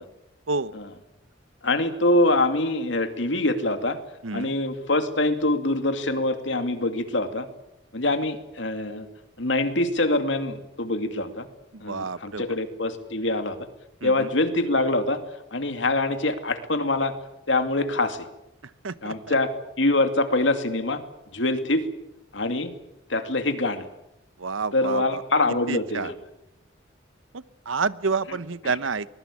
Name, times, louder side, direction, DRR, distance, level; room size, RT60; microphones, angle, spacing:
voice 1, 1.6-4.0 4.3-7.5 7.9-9.1 9.4-11.5 11.8-13.6 14.0-15.2 15.5-17.1 17.5-18.3 19.0-21.0 21.3-21.8 22.3-22.7 23.1-23.8 24.7-26.2, left 2 dB, 70° left, 8 dB, 2.5 m, -24 dB
voice 2, 11.7-12.4 14.0-14.3 18.8-19.3 24.4-25.2 25.7-26.1 27.3-29.1, right 4 dB, 85° right, 16 dB, 0.9 m, -29 dB
23.5 x 21.0 x 8.5 m, 0.87 s
head